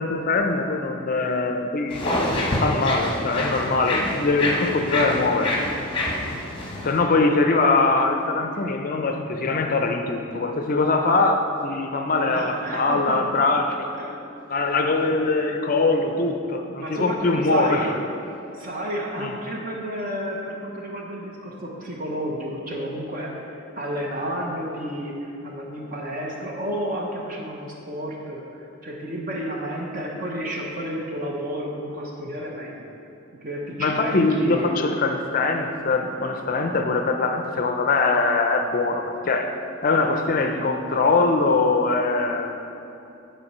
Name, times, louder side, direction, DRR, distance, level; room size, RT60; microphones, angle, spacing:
voice 1, 0.0-2.0 2.6-5.6 6.8-13.9 14.5-17.9 19.2-19.3 33.8-39.5 39.8-42.6, left 3 dB, 40° left, 5 dB, 0.4 m, -22 dB
sound 1, 1.9-7.0, left 1 dB, 25° left, 1.0 m, -26 dB
voice 2, 12.3-13.3 14.0-14.1 15.1-15.4 16.8-17.9 18.5-23.4 23.8-32.9 33.4-34.7, equal, 40° right, -1 dB, 0.8 m, -31 dB
8.7 x 4.4 x 5.4 m, 2.8 s
head